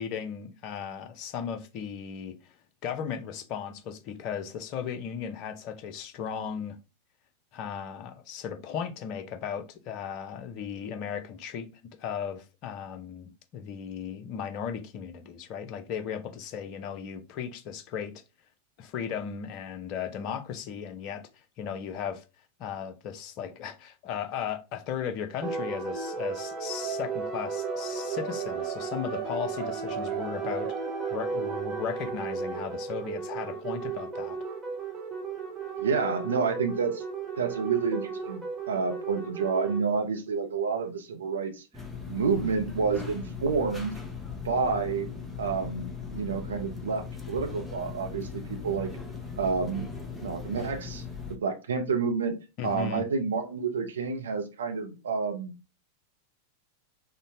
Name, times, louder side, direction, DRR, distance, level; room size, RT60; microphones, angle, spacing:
voice 1, 0.0-2.5 2.8-6.8 7.5-18.1 18.8-22.2 22.6-30.7 31.1-34.4 52.6-53.0, left 8 dB, 40° left, 0.6 m, -36 dB
sound 1, 25.4-39.8, right 5 dB, 25° right, 1.0 m, -34 dB
voice 2, 35.8-37.0 37.4-41.6 42.1-44.0 44.4-45.1 45.4-48.9 49.4-49.9 50.2-51.0 51.4-52.4 52.6-55.5, right 5 dB, 65° right, 0.5 m, -29 dB
sound 2, 41.7-51.4, left 5 dB, 5° left, 0.7 m, -39 dB
3.8 x 2.1 x 2.6 m
figure-of-eight pair, 90°, 0 cm